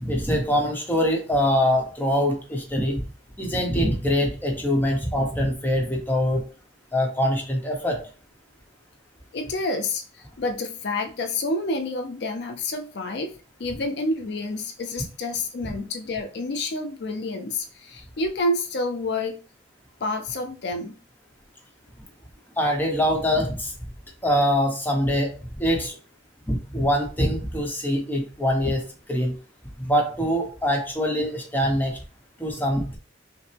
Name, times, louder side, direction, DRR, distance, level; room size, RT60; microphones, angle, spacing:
voice 1, 0.0-3.0 3.4-6.4 6.9-8.0 22.6-23.7 24.2-25.3 25.6-26.0 26.5-28.8 29.1-29.3 29.8-32.0 32.4-33.0, equal, 10° left, 1 dB, 0.9 m, -23 dB
voice 2, 9.3-13.3 13.6-19.4 20.0-21.0, left 2 dB, 60° left, 5 dB, 0.4 m, -28 dB
5.6 x 2.1 x 3.3 m, 0.37 s
head